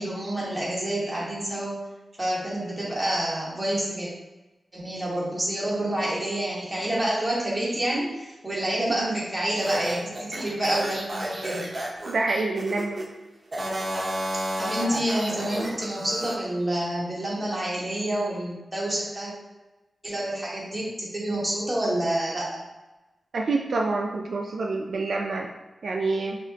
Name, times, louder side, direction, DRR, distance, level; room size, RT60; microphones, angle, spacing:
voice 1, 0.0-1.8 2.2-4.1 4.7-11.7 14.6-19.3 20.0-22.6, right 1 dB, 10° right, -6 dB, 1.3 m, -28 dB
sound 1, 9.6-13.1 13.5-16.4, right 1 dB, 30° right, 0.7 m, -31 dB
voice 2, 12.1-13.0 23.3-25.5 25.8-26.4, right 3 dB, 65° right, 1 dB, 0.3 m, -27 dB
5.0 x 3.0 x 2.8 m, 1.1 s
wide cardioid pair, 155°, 0 cm